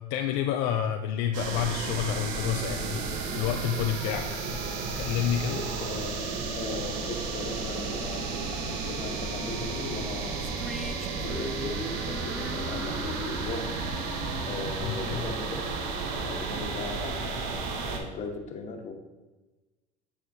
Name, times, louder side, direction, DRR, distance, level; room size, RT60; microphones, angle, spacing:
voice 1, 0.1-3.0 3.3-4.3 5.0-5.6 14.8-15.2, left 9 dB, 70° left, 4 dB, 0.4 m, -29 dB
sound 1, 1.3-18.0, right 4 dB, 75° right, 0.9 m, -33 dB
voice 2, 5.5-10.5 11.1-13.7 14.5-15.6 16.1-18.9, left 4 dB, 40° left, 3 dB, 1.1 m, -38 dB
sound 2, 10.4-15.7, equal, ahead, 0.4 m, -40 dB
8.4 x 4.2 x 2.8 m, 1.2 s
supercardioid pair, 95°, 18 cm